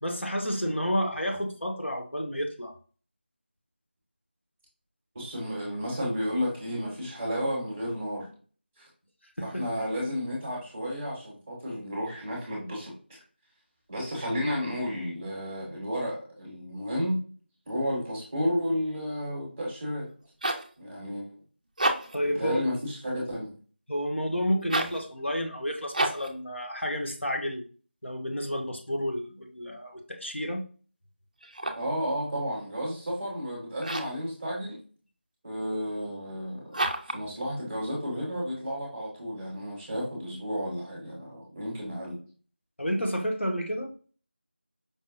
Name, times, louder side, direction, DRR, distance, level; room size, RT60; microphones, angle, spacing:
voice 1, 0.0-2.7 9.4-9.6 22.1-22.6 23.9-27.6 28.0-30.6 42.8-43.9, equal, 90° left, 2 dB, 0.9 m, -30 dB
voice 2, 5.1-8.3 8.8-8.9 9.4-12.9 13.9-17.2 17.7-20.1 20.8-21.4 22.4-23.5 31.7-34.8 35.4-36.7 37.1-42.2, equal, 10° right, -4 dB, 0.9 m, -32 dB
sound 1, 20.1-20.7 21.7-22.3 24.6-25.0 25.9-26.4 31.4-32.0 33.8-34.2 36.7-37.2, right 1 dB, 40° right, 0.4 m, -30 dB
5.2 x 2.1 x 2.5 m, 0.40 s
figure-of-eight pair, 170°, 6 cm